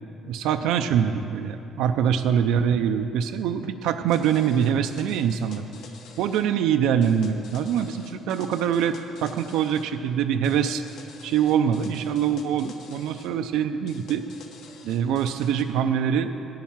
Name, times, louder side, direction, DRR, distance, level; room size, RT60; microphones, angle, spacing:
voice 1, 0.3-5.6 6.2-10.8 11.2-14.2 14.8-16.3, right 8 dB, 85° right, 7 dB, 0.5 m, -24 dB
sound 1, 4.1-6.4 7.0-9.9 10.4-13.3 13.9-15.6, left 5 dB, 65° left, 1.2 m, -48 dB
10.5 x 10.0 x 7.2 m, 2.9 s
cardioid pair, 155°, 0 cm